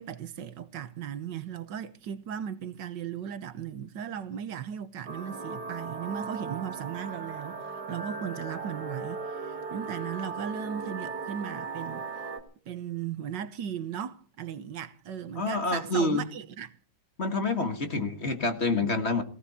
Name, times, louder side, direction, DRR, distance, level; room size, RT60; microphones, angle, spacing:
voice 1, 0.0-12.0 12.7-16.7, right 8 dB, 75° right, 1.6 m, -37 dB
sound 1, 5.1-12.4, right 4 dB, 55° right, 2.7 m, -37 dB
voice 2, 15.4-16.2 17.2-19.2, left 2 dB, 35° left, 1.9 m, -27 dB
18.0 x 17.0 x 4.2 m
omnidirectional pair, 2.0 m